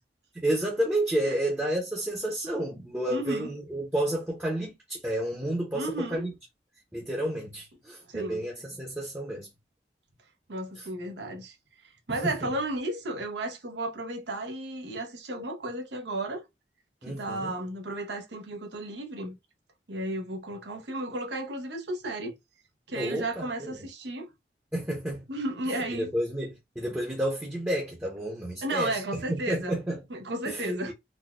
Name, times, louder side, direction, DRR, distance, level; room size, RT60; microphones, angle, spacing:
voice 1, 0.3-6.3 6.9-9.5 10.8-10.9 12.1-12.3 17.0-17.5 22.9-23.9 24.7-25.2 25.7-29.0 29.3-30.0 30.4-30.9, right 1 dB, 10° right, 0.6 m, -31 dB
voice 2, 3.1-3.5 5.7-6.2 8.1-8.4 10.5-11.6 12.1-16.4 17.1-19.4 19.9-22.3 22.9-24.3 25.3-26.1 28.6-29.8 30.1-30.9, right 1 dB, 85° right, 0.8 m, -33 dB
3.9 x 2.2 x 2.3 m
head